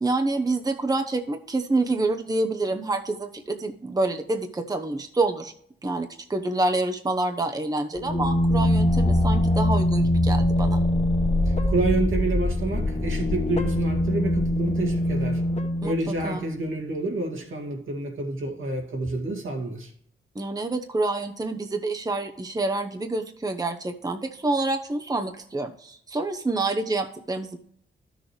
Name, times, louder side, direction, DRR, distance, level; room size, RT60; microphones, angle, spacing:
voice 1, 0.0-5.5 5.8-10.8 15.8-15.9 16.2-16.4 20.3-27.6, right 2 dB, 20° right, 0.9 m, -27 dB
sound 1, 8.0-16.5, left 1 dB, 30° left, 1.5 m, -23 dB
voice 2, 11.5-15.4 15.8-19.9, right 2 dB, 75° right, 2.3 m, -28 dB
12.5 x 6.5 x 3.2 m
cardioid pair, 75°, 21 cm